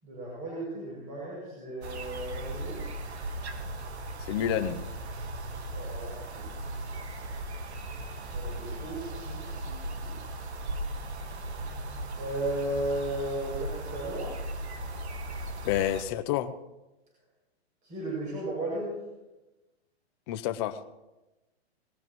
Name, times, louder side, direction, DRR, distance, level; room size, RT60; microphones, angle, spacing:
voice 1, 0.0-2.9 5.6-6.5 8.3-10.1 12.2-14.3 17.8-18.9, right 1 dB, 20° right, -5 dB, 6.8 m, -35 dB
sound 1, 1.8-16.0, right 1 dB, 80° right, 1.8 m, -37 dB
voice 2, 4.3-4.8 15.6-16.5 20.3-20.8, left 12 dB, 25° left, 10 dB, 0.7 m, -29 dB
19.5 x 18.5 x 3.1 m, 1.0 s
hypercardioid pair, 155°, 33 cm